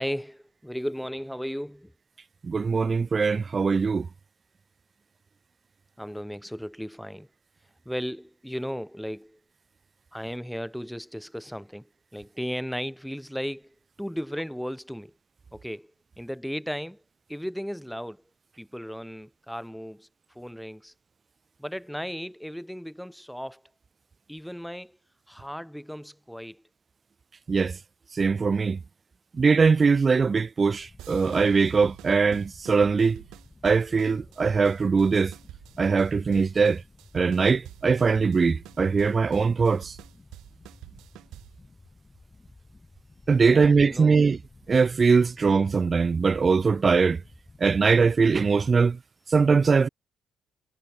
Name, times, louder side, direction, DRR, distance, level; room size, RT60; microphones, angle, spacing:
voice 1, 0.0-1.9 6.0-7.3 7.9-9.4 10.1-15.1 15.5-15.9 16.2-17.0 17.3-18.2 18.6-20.1 20.3-20.9 21.6-23.6 24.3-25.0 25.3-26.6 43.4-44.2, equal, ahead, 5.4 m, -35 dB
voice 2, 2.4-4.1 27.5-27.8 28.2-28.8 29.4-33.2 33.6-35.3 35.8-36.8 37.1-40.0 43.3-44.4 44.7-47.2 47.6-49.0 49.3-49.9, right 5 dB, 35° right, 0.3 m, -21 dB
sound 1, 30.6-47.6, left 3 dB, 20° left, 5.8 m, -54 dB
sound 2, 31.0-41.7, right 15 dB, 90° right, 1.9 m, -48 dB
cardioid pair, 90°, 0 cm